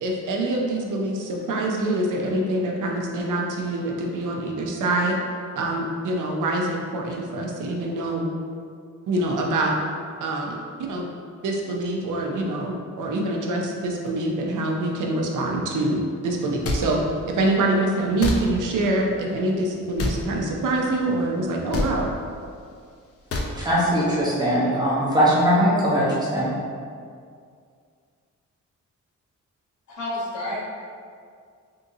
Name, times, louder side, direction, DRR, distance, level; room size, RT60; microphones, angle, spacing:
voice 1, 0.0-5.2 5.6-8.3 9.1-9.7 10.2-11.1 11.4-22.1, right 2 dB, 85° right, 0 dB, 0.5 m, -25 dB
sound 1, 16.6-16.8 18.2-18.4 20.0-20.2 21.7-21.9 23.3-23.5, left 2 dB, 50° left, 0.5 m, -24 dB
voice 2, 23.6-26.5, equal, 15° right, -8 dB, 0.8 m, -20 dB
voice 3, 29.9-30.6, left 1 dB, 70° left, -8 dB, 1.1 m, -30 dB
3.6 x 2.7 x 2.6 m, 2.2 s
wide cardioid pair, 130°, 30 cm